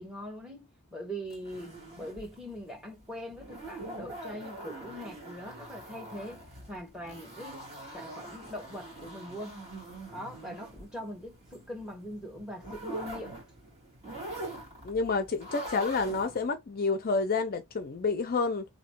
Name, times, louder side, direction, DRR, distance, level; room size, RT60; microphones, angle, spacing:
voice 1, 0.0-7.7 7.9-9.6 10.1-13.4, equal, 5° right, 1.3 m, -42 dB
sound 1, 1.3-16.5, right 1 dB, 30° right, 1.9 m, -44 dB
voice 2, 14.8-18.7, left 4 dB, 45° left, 0.5 m, -29 dB
3.0 x 2.7 x 4.4 m
head